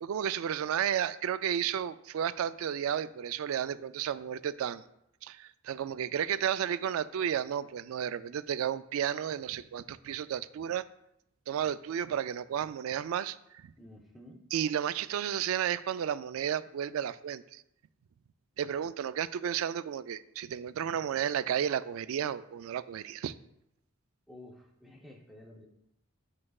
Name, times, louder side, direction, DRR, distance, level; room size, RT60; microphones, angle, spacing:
voice 1, 0.0-4.8 5.2-10.8 11.5-13.7 14.5-17.6 18.6-23.3, right 9 dB, 80° right, 15 dB, 0.3 m, -32 dB
voice 2, 13.8-14.4 24.3-25.7, left 1 dB, ahead, -1 dB, 0.6 m, -51 dB
8.5 x 4.8 x 2.3 m, 0.79 s
head